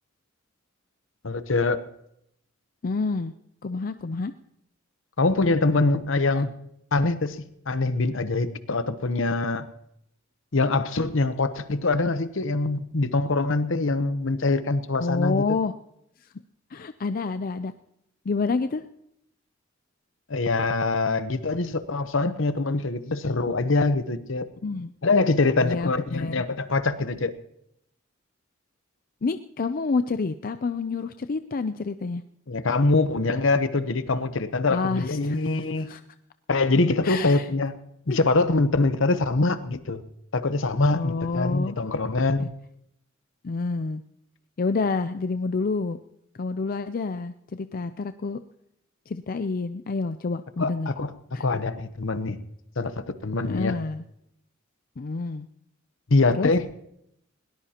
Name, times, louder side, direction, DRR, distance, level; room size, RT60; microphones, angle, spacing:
voice 1, 1.2-1.8 5.2-6.5 6.9-9.7 10.5-15.4 20.3-24.5 25.0-27.3 32.5-35.9 36.5-37.7 38.1-40.0 40.3-42.5 50.6-51.1 51.4-52.4 52.8-53.7 56.1-56.6, left 3 dB, 70° left, 12 dB, 0.9 m, -24 dB
voice 2, 2.8-3.3 3.6-4.3 6.4-6.5 15.0-15.7 16.7-17.7 18.3-18.8 24.6-24.9 25.6-26.4 29.2-32.2 34.7-36.0 37.0-37.5 38.1-38.2 40.9-41.8 42.4-42.5 43.4-44.0 44.6-46.0 46.4-48.4 49.1-50.9 51.3-51.4 53.4-54.0 55.0-55.5 56.3-56.5, left 4 dB, 45° left, 10 dB, 0.5 m, -28 dB
21.0 x 18.5 x 2.9 m, 0.77 s
head